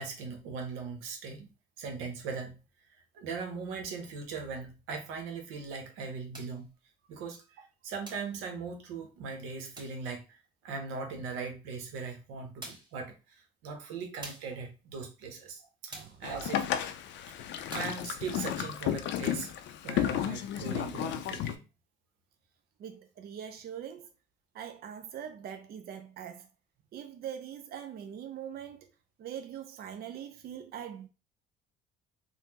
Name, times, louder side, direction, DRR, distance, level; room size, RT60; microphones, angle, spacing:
voice 1, 0.0-1.5 1.8-2.6 3.1-6.7 7.1-16.7 17.7-19.5 19.8-21.6, right 5 dB, 85° right, 0.8 m, -39 dB
sound 1, 6.3-6.6 8.0-8.4 9.7-10.0 11.8-11.9 12.6-13.0 14.2-14.6 15.9-16.2 17.7-18.0, right 2 dB, 20° right, 1.2 m, -46 dB
Boat Water vehicle, 16.2-21.5, left 11 dB, 65° left, 0.4 m, -33 dB
voice 2, 22.8-24.1 24.5-26.5 26.9-28.9 29.2-31.1, right 9 dB, 50° right, 0.5 m, -42 dB
3.4 x 2.1 x 2.8 m
supercardioid pair, 70°, 20 cm